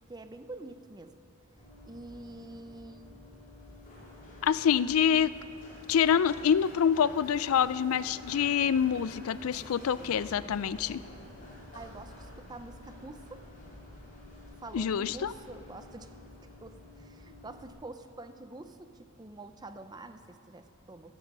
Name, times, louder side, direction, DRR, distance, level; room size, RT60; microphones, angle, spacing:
voice 1, 0.1-1.2 1.9-3.0 11.7-13.4 14.6-16.1 16.6-21.2, right 2 dB, 20° right, 9 dB, 0.6 m, -46 dB
Run, 1.6-17.7, left 1 dB, 40° left, 3.2 m, -49 dB
voice 2, 4.4-5.3 5.9-11.0 14.7-15.3, left 8 dB, 75° left, 17 dB, 0.4 m, -26 dB
14.0 x 11.5 x 6.0 m, 2.7 s
head